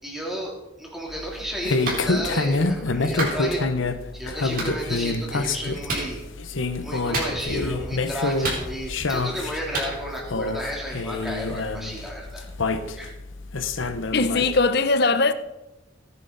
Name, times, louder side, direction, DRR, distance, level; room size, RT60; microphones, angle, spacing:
voice 1, 0.0-3.7 4.1-6.2 6.8-12.4 12.9-13.1, equal, ahead, 3.2 m, -33 dB
sound 1, 1.1-14.7, left 3 dB, 80° left, 0.9 m, -27 dB
Clapping, 1.8-2.0 3.2-3.4 4.6-4.7 5.9-6.1 7.1-7.6 8.4-9.0 9.7-9.9, right 2 dB, 45° right, 4.3 m, -28 dB
voice 2, 14.1-15.3, left 3 dB, 55° left, 0.8 m, -20 dB
18.0 x 10.0 x 4.0 m
head